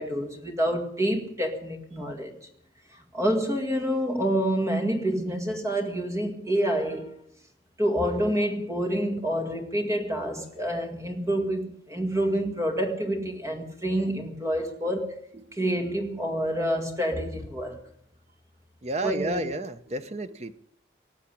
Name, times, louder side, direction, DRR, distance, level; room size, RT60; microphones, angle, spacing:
voice 1, 0.0-2.4 3.1-7.2 7.8-15.2 15.5-17.8 19.0-19.5, equal, 15° right, 1.9 m, -27 dB
voice 2, 18.8-20.5, right 1 dB, 35° right, 0.8 m, -31 dB
19.0 x 7.4 x 10.0 m
head